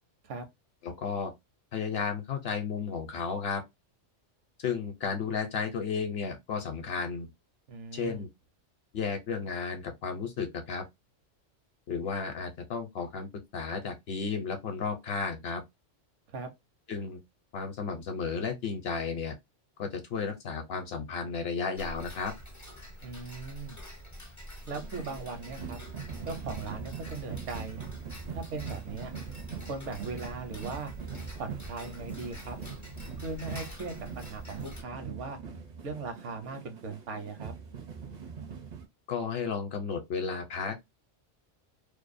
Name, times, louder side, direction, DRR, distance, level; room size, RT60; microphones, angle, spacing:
voice 1, 0.8-1.3 1.7-3.6 4.6-7.3 7.9-8.3 8.9-10.8 11.9-15.6 16.9-17.2 17.5-19.4 19.8-22.3 39.1-40.8, left 5 dB, 60° left, 0.8 m, -33 dB
voice 2, 7.7-8.3 16.3-16.5 23.0-23.8 24.7-25.8 26.3-27.8 28.3-29.1 29.6-30.9 31.4-32.6 33.2-35.4 35.8-37.5, right 4 dB, 75° right, 1.0 m, -39 dB
Tick-tock, 21.8-34.8, equal, 25° left, 0.3 m, -46 dB
sound 1, 24.7-38.9, right 6 dB, 50° right, 0.5 m, -42 dB
2.6 x 2.2 x 2.4 m
omnidirectional pair, 1.3 m